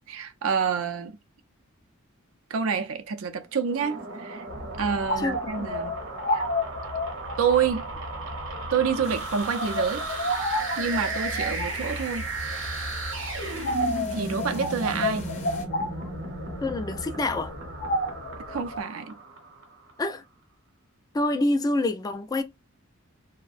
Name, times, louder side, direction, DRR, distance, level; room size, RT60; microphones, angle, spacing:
voice 1, 0.1-1.2 2.5-4.4 4.8-5.9 6.3-6.4 7.4-7.9 8.7-10.1 10.8-12.3 14.1-15.3 18.5-19.1, right 6 dB, 85° right, 0.5 m, -27 dB
sound 1, 3.6-19.9, right 3 dB, 65° right, 0.8 m, -36 dB
sound 2, 4.5-18.8, left 1 dB, 70° left, 0.7 m, -32 dB
voice 2, 5.2-5.7 16.6-17.5 20.0-20.2 21.1-22.4, left 2 dB, 20° left, 0.3 m, -27 dB
sound 3, 9.0-15.7, left 4 dB, 35° left, 0.8 m, -46 dB
2.4 x 2.1 x 2.5 m
head